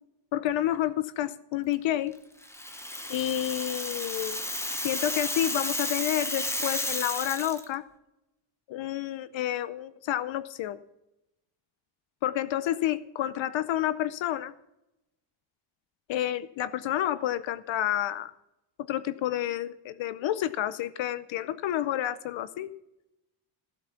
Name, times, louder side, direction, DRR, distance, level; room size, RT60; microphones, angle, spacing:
voice 1, 0.3-2.1 3.1-4.4 4.7-7.8 8.7-10.8 12.2-14.5 16.1-18.3 18.8-22.7, left 12 dB, 65° left, 15 dB, 0.7 m, -29 dB
Rattle (instrument), 2.4-7.6, left 1 dB, 5° left, 0.7 m, -32 dB
15.5 x 7.9 x 5.8 m, 0.91 s
cardioid pair, 170°, 49 cm